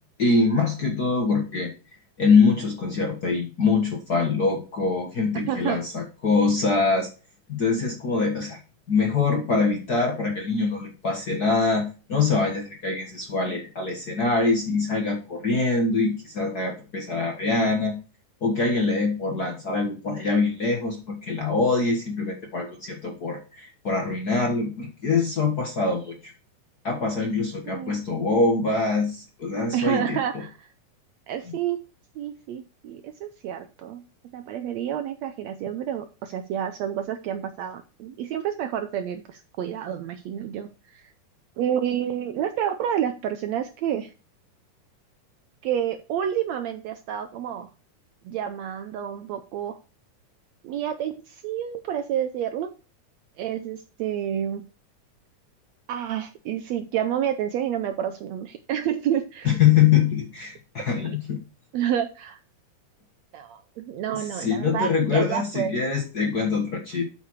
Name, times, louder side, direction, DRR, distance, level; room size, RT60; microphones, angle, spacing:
voice 1, 0.2-1.7 2.2-7.1 7.5-8.6 8.9-17.9 18.4-26.3 26.8-30.4 31.5-31.6 59.4-61.4 64.1-67.0, left 4 dB, 55° left, 2 dB, 1.1 m, -24 dB
voice 2, 5.5-5.8 27.7-28.0 29.7-30.7 31.3-31.8 32.2-34.0 34.3-41.1 41.6-44.1 45.6-47.7 48.2-49.8 50.6-52.7 53.4-54.6 55.9-59.6 61.0-61.2 61.7-62.4 63.3-65.8, right 10 dB, 80° right, 9 dB, 1.5 m, -29 dB
8.6 x 6.7 x 4.6 m, 0.34 s
omnidirectional pair, 3.8 m